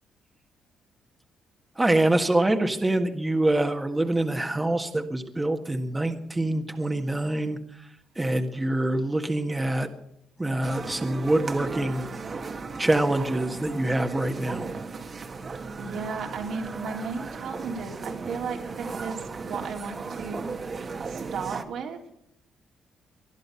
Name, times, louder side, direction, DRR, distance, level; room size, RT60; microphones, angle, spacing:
voice 1, 1.8-7.9 8.1-9.9 10.4-12.1 12.8-14.7, right 1 dB, 15° right, 4 dB, 1.6 m, -25 dB
sound 1, 10.6-21.6, right 4 dB, 40° right, 1.8 m, -36 dB
voice 2, 15.8-20.5 21.0-22.2, right 5 dB, 75° right, 0 dB, 3.4 m, -35 dB
20.5 x 12.0 x 5.7 m, 0.74 s
cardioid pair, 90°, 0 cm